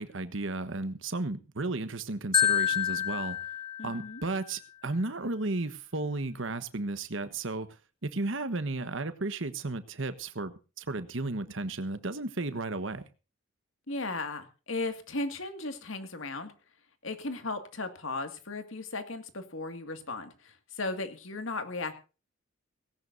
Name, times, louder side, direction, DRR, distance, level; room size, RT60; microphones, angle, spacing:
voice 1, 0.0-3.4 3.8-7.7 8.0-13.0, right 2 dB, 65° right, 11 dB, 1.3 m, -34 dB
Marimba xylophone, 2.3-4.4, left 9 dB, 25° left, 0.8 m, -28 dB
voice 2, 3.8-4.2 13.9-16.5 17.0-21.9, left 3 dB, 70° left, 8 dB, 2.1 m, -36 dB
18.0 x 17.0 x 2.7 m, 0.33 s
head